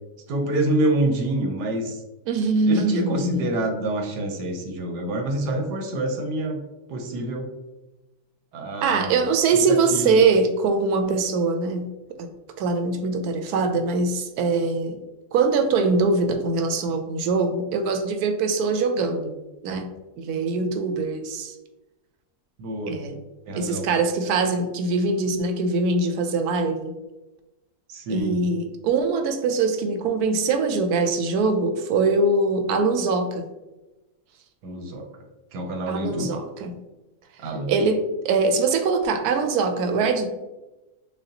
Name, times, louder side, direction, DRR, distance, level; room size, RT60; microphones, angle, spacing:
voice 1, 0.3-2.0 2.7-6.6 6.9-7.5 8.5-9.2 9.5-10.2 22.6-23.0 23.5-23.9 27.9-28.4 34.6-35.1 35.5-36.4 37.4-37.7, right 1 dB, 90° right, 4 dB, 1.3 m, -27 dB
voice 2, 2.3-3.6 8.8-11.9 12.2-12.3 12.6-15.0 15.3-19.3 19.6-19.9 20.2-21.6 22.9-23.2 23.6-26.9 28.1-33.5 35.9-36.8 37.7-40.3, right 4 dB, 75° right, 7 dB, 1.0 m, -23 dB
6.3 x 2.2 x 2.7 m, 1.1 s
omnidirectional pair, 1.7 m